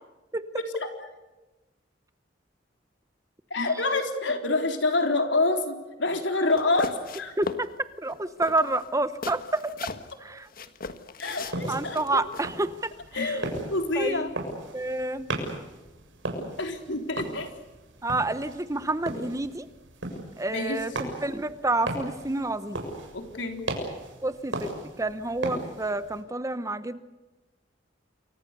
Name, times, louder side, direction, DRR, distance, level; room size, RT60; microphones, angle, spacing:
voice 1, 3.5-7.3 11.2-12.2 13.1-14.3 16.4-17.5 20.5-21.1 23.1-23.6, left 2 dB, 70° left, 5 dB, 3.9 m, -27 dB
sound 1, 6.5-7.7 8.0-8.2 8.4-10.1 10.5-12.5, left 3 dB, 50° left, 1.5 m, -37 dB
voice 2, 7.4-7.7 8.0-9.7 10.2-10.5 11.7-13.3 14.0-14.3 14.7-15.3 18.0-19.7 20.4-22.8 24.2-24.7 25.0-27.0, right 2 dB, 15° right, 13 dB, 0.9 m, -29 dB
sound 2, 11.3-26.2, right 1 dB, 90° right, 6.8 m, -37 dB
28.5 x 24.0 x 6.8 m, 1.1 s
head